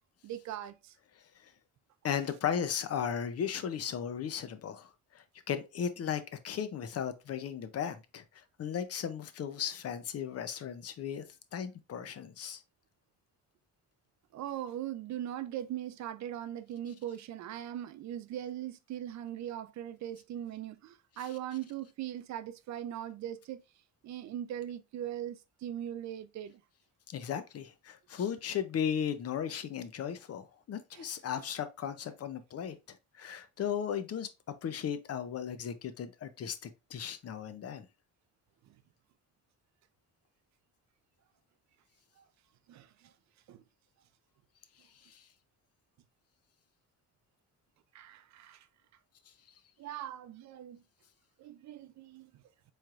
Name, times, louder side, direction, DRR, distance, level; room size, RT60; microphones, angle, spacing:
voice 1, 0.2-1.0 14.3-23.6 24.0-26.6 30.9-31.1 42.2-42.3 42.7-43.1 43.5-43.6 47.9-48.7 49.8-50.8 51.4-52.3, right 11 dB, 65° right, 0.5 m, -40 dB
voice 2, 2.0-11.3 11.5-12.6 27.1-34.3 34.6-37.9 45.0-45.2, left 8 dB, 55° left, 0.6 m, -36 dB
4.4 x 3.2 x 2.4 m
cardioid pair, 90°, 30 cm